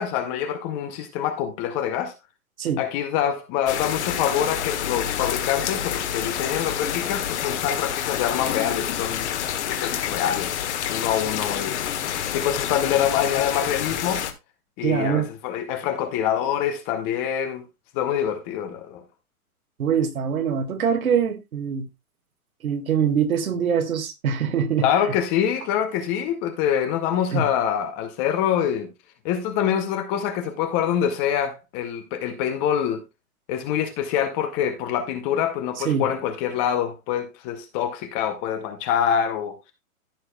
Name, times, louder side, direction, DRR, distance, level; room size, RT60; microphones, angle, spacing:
voice 1, 0.0-2.1 2.8-9.3 9.7-10.6 10.9-14.2 14.8-17.6 17.9-19.0 24.8-28.9 29.2-33.0 33.5-39.7, left 9 dB, 15° left, 0.7 m, -25 dB
sound 1, 3.7-14.3, left 10 dB, 50° left, 1.5 m, -28 dB
voice 2, 14.8-15.3 19.8-21.9 22.6-24.9 27.3-27.4 35.8-36.1, right 7 dB, 70° right, 2.0 m, -23 dB
14.5 x 6.2 x 2.3 m
hypercardioid pair, 140°, 44 cm